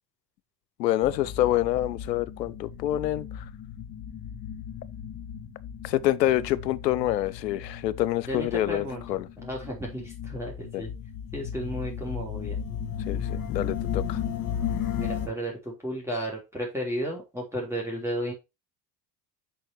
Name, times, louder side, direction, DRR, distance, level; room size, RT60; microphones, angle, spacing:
voice 1, 0.8-3.4 5.8-9.3 10.7-10.8 13.1-14.2, left 14 dB, 75° left, 0.7 m, -27 dB
sound 1, 1.0-15.3, left 8 dB, 40° left, 2.0 m, -35 dB
voice 2, 8.3-10.9 11.3-12.6 15.0-18.3, equal, 5° right, 3.4 m, -33 dB
6.4 x 5.2 x 4.5 m
figure-of-eight pair, 65°, 50 cm